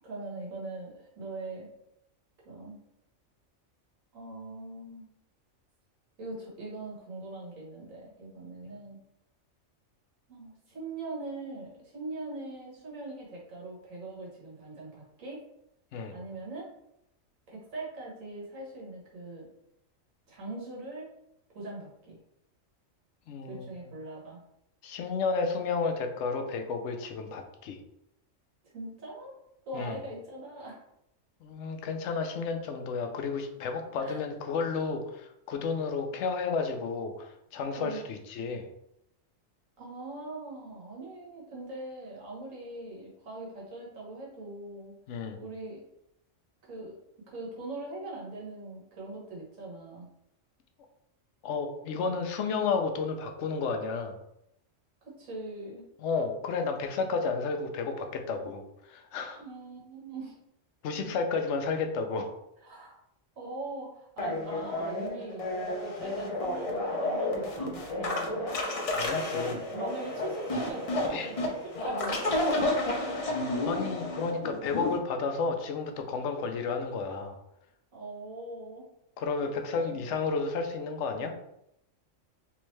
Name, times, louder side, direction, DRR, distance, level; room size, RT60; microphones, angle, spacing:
voice 1, 0.0-1.7 2.4-2.8 4.1-5.1 6.2-9.0 10.3-15.4 16.1-16.7 17.5-19.5 20.3-21.1 21.5-22.2 23.5-24.4 28.7-29.3 29.7-30.8 34.0-34.3 37.7-38.0 39.8-44.9 45.4-45.8 46.7-47.0 47.3-50.1 55.0-55.8 59.4-60.3 62.6-62.9 63.3-65.5 65.8-68.6 69.4-71.5 71.8-72.9 77.9-78.8 79.3-80.0, right 2 dB, 80° right, -4 dB, 1.6 m, -41 dB
voice 2, 23.3-23.6 24.8-27.8 29.7-30.0 31.4-38.7 45.1-45.4 51.4-54.1 56.0-58.6 58.9-59.4 60.8-62.3 68.9-69.6 71.1-71.3 73.6-77.4 79.2-81.3, left 4 dB, 70° left, 5 dB, 0.9 m, -32 dB
sound 1, 64.2-75.0, left 1 dB, 40° left, 0.5 m, -31 dB
3.5 x 3.2 x 3.1 m, 0.80 s
omnidirectional pair, 1.3 m